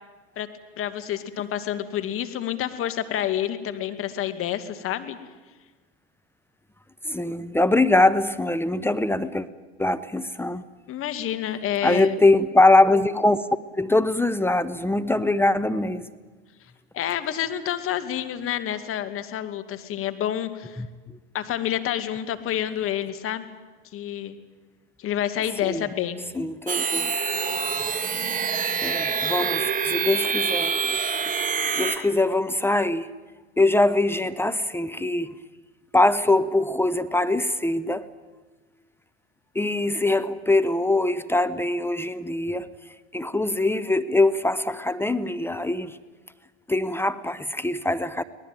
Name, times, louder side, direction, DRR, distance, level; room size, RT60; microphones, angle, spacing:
voice 1, 0.8-5.2 10.9-12.1 16.9-20.8 21.3-23.5 23.9-24.4 25.0-26.2, left 11 dB, 40° left, 9 dB, 2.3 m, -28 dB
voice 2, 7.0-9.5 9.8-10.6 11.8-13.5 13.8-16.0 20.8-20.9 25.6-25.9 26.3-27.2 28.8-31.0 31.8-33.1 33.6-35.4 35.9-38.1 39.5-42.7 43.1-46.0 46.7-48.2, left 2 dB, 5° left, 14 dB, 1.0 m, -22 dB
sound 1, 26.7-32.0, right 6 dB, 25° right, 2.1 m, -26 dB
23.5 x 19.0 x 9.1 m, 1.3 s
hypercardioid pair, 95°, 32 cm